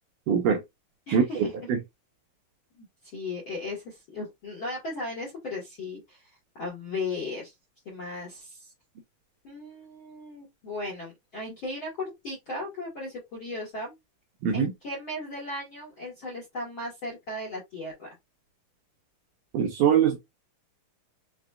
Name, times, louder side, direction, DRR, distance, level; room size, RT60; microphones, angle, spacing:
voice 1, 0.3-0.6 1.1-1.2 1.7-1.8 14.4-14.7 19.5-20.2, right 7 dB, 75° right, 2.0 m, -22 dB
voice 2, 1.1-1.5 2.8-7.5 7.8-8.7 9.4-13.9 14.5-18.1, left 2 dB, 60° left, 1.3 m, -36 dB
5.8 x 2.2 x 2.3 m
omnidirectional pair, 4.3 m